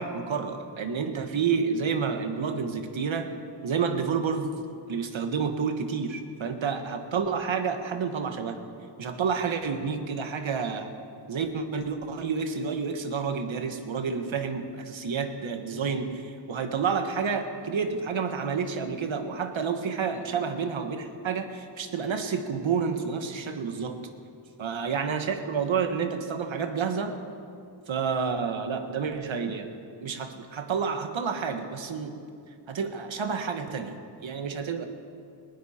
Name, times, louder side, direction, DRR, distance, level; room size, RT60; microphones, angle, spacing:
voice 1, 0.0-3.3 3.6-4.6 4.9-8.6 9.0-10.9 11.3-24.0 24.6-27.2 27.9-29.7 30.0-32.2 32.7-34.9, right 5 dB, 70° right, 7 dB, 1.4 m, -29 dB
19.5 x 16.5 x 4.4 m, 2.4 s
cardioid pair, 80°, 48 cm